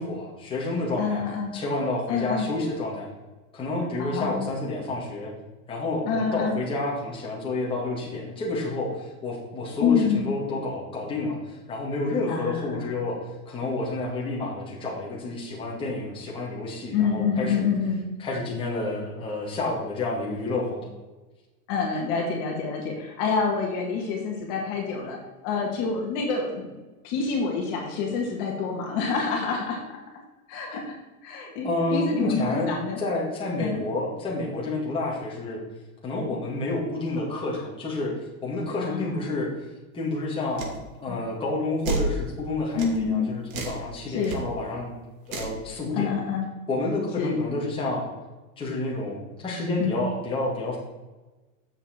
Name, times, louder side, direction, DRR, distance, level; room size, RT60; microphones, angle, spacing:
voice 1, 0.0-1.2 1.5-3.1 3.5-5.3 5.7-13.2 13.5-17.7 18.2-20.9 31.6-35.6 36.0-38.1 38.4-39.5 39.9-44.9 45.3-46.1 46.7-48.0 48.6-50.8, left 2 dB, 10° left, -4 dB, 2.0 m, -29 dB
voice 2, 1.0-1.6 2.1-2.5 4.0-4.5 6.1-6.6 9.8-10.3 12.3-12.9 16.9-18.0 21.7-25.2 25.4-26.7 27.0-29.8 30.5-30.9 31.2-33.0 33.6-33.8 38.8-39.2 41.1-41.2 42.8-43.4 44.1-44.4 45.9-46.5 47.2-47.4 49.8-50.1, left 5 dB, 40° left, 1 dB, 1.9 m, -27 dB
sound 1, 40.6-40.8 41.8-42.1 42.8-43.0 43.5-43.8 44.2-44.4 45.3-45.6, right 3 dB, 65° right, 2.4 m, -29 dB
9.0 x 7.3 x 4.4 m, 1.2 s
supercardioid pair, 160°, 43 cm